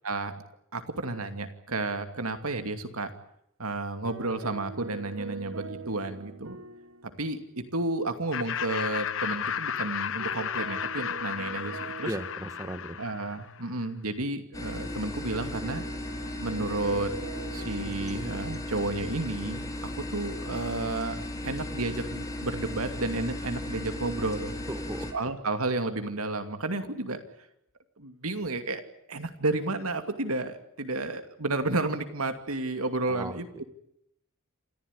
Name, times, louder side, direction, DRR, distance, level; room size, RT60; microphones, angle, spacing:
voice 1, 0.7-3.1 3.6-6.6 7.2-12.1 13.0-15.8 16.4-17.1 17.5-24.5 25.1-27.2 28.0-28.8 29.1-33.6, right 2 dB, 90° right, 8 dB, 2.6 m, -32 dB
sound 1, 4.0-7.6 7.9-8.0 10.2-13.5 15.6-18.9, right 4 dB, 65° right, 1.1 m, -43 dB
Laughter, 8.3-13.6, left 8 dB, 65° left, 0.9 m, -33 dB
voice 2, 12.0-13.0 24.7-25.3 33.1-33.4, right 1 dB, 15° right, 10 dB, 1.2 m, -36 dB
sound 2, 14.5-25.1, left 1 dB, 15° left, 3.2 m, -36 dB
27.5 x 15.0 x 9.9 m, 0.75 s
head